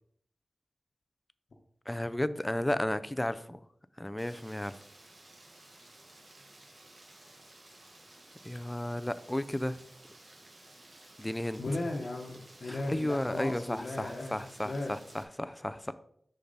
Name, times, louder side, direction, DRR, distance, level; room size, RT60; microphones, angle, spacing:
voice 1, 1.9-3.6 4.0-4.8 8.4-9.8 11.2-11.6 12.6-15.9, left 1 dB, 15° left, 13 dB, 0.5 m, -33 dB
Rain, 4.2-15.2, right 2 dB, 50° right, 1.3 m, -55 dB
voice 2, 11.6-14.4 14.6-14.9, left 2 dB, 70° left, -2 dB, 1.0 m, -36 dB
6.7 x 6.0 x 4.0 m, 0.67 s
wide cardioid pair, 75°, 0 cm